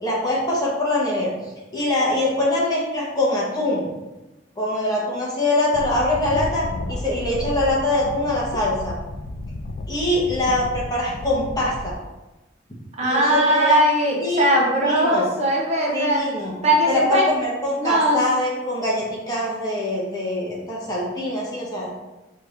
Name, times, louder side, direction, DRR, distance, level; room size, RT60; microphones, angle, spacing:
voice 1, 0.0-1.3 1.7-3.9 4.6-9.0 9.9-11.9 13.0-13.8 14.2-14.5 14.8-15.3 15.9-16.5 16.9-21.9, left 1 dB, 20° left, -5 dB, 1.0 m, -23 dB
sound 1, 5.7-11.9, left 2 dB, 65° left, 0.4 m, -32 dB
voice 2, 13.0-16.2 16.6-17.3 17.8-18.2, right 1 dB, 35° right, -3 dB, 0.8 m, -19 dB
4.7 x 3.4 x 2.5 m, 1.1 s
head